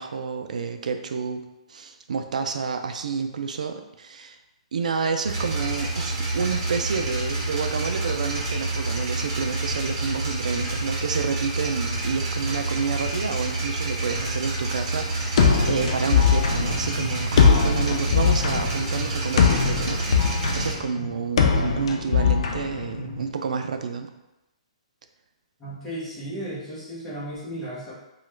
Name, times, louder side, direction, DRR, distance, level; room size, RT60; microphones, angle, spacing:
voice 1, 0.0-4.4 4.7-24.1, right 5 dB, 85° right, 7 dB, 0.4 m, -29 dB
sound 1, 5.2-20.7, right 2 dB, 40° right, 1.0 m, -28 dB
sound 2, 15.4-23.3, left 6 dB, 55° left, 0.4 m, -21 dB
voice 2, 25.6-27.9, right 1 dB, 10° left, -10 dB, 0.9 m, -34 dB
2.9 x 2.3 x 3.2 m, 0.95 s
hypercardioid pair, 170°, 4 cm